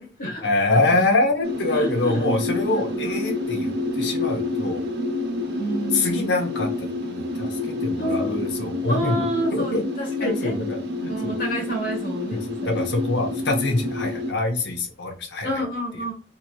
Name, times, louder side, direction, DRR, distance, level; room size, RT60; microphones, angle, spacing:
voice 1, 0.2-4.8 5.9-9.2 9.5-11.4 12.3-15.5, left 2 dB, 80° left, 4 dB, 0.7 m, -25 dB
sound 1, 1.4-14.3, left 2 dB, 70° right, 0.6 m, -28 dB
voice 2, 1.7-2.3 2.7-2.8 5.5-6.4 8.0-8.5 8.9-10.5 11.1-12.7 15.4-16.1, right 1 dB, 50° left, 0 dB, 1.2 m, -29 dB
2.9 x 2.8 x 2.3 m, 0.40 s
head